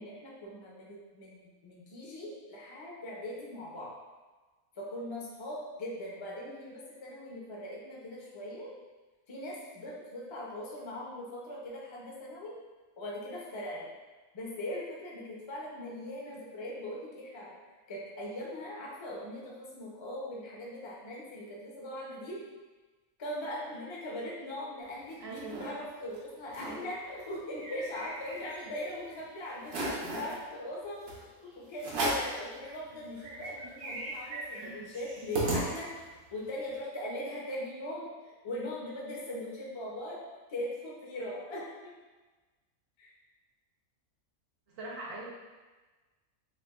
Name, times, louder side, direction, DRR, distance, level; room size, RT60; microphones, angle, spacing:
voice 1, 0.0-3.9 4.8-8.7 9.3-12.6 13.0-13.9 14.3-17.6 17.9-22.4 23.2-35.9 36.3-40.2 40.5-42.0 43.0-43.1, left 1 dB, 40° left, -4 dB, 0.4 m, -40 dB
sound 1, 24.9-25.7 26.1-26.2 26.5-26.8 27.2-28.8 29.2-29.3 29.6-30.4 31.1-31.2 31.8-32.4 32.9-33.0 33.2-36.2, right 1 dB, 80° right, 1.3 m, -36 dB
voice 2, 25.2-25.6 34.6-34.8 44.7-45.3, right 2 dB, 55° right, -3 dB, 0.7 m, -42 dB
5.8 x 2.0 x 2.3 m, 1.3 s
omnidirectional pair, 1.5 m